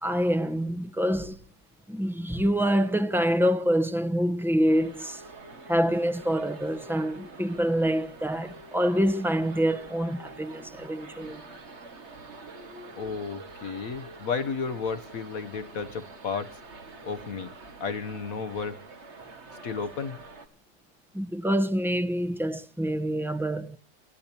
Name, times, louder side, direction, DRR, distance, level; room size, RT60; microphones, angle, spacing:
voice 1, 0.0-1.4 1.9-5.2 5.7-11.4 21.1-23.8, equal, ahead, 0.7 m, -26 dB
sound 1, 4.7-20.5, right 3 dB, 40° right, 1.9 m, -46 dB
voice 2, 13.0-16.6 17.0-17.5 17.8-18.8 19.6-20.2, left 5 dB, 60° left, 1.3 m, -33 dB
29.5 x 12.0 x 2.8 m
omnidirectional pair, 1.8 m